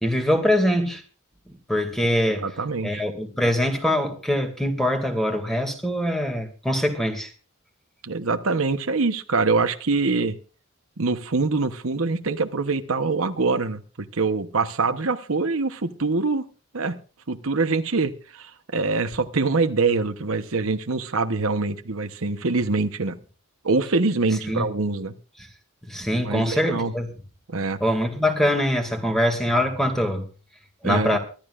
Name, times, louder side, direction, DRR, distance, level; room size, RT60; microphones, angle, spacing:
voice 1, 0.0-1.0 1.5-2.4 2.8-7.3 24.4-24.7 25.8-27.1 27.8-30.2 30.8-31.2, equal, ahead, 2.4 m, -23 dB
voice 2, 2.4-3.0 8.0-10.4 11.0-13.8 14.1-16.4 16.7-17.0 17.3-23.2 23.6-25.1 26.1-26.9 27.5-27.8 30.8-31.2, right 3 dB, 70° right, 1.0 m, -24 dB
24.0 x 11.5 x 2.5 m
head